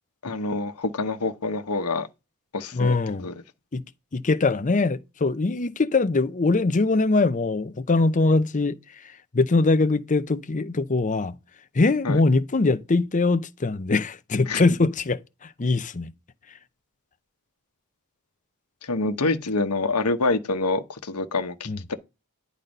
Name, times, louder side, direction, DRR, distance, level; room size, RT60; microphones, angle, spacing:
voice 1, 0.2-2.1 2.5-3.4 12.0-12.2 14.5-14.6 18.8-21.9, left 3 dB, 90° left, 1.1 m, -26 dB
voice 2, 2.7-3.3 3.7-3.8 4.1-8.8 9.3-11.3 11.7-15.2 15.6-16.1 21.7-21.8, left 3 dB, 35° left, 0.6 m, -22 dB
10.5 x 4.1 x 5.3 m
head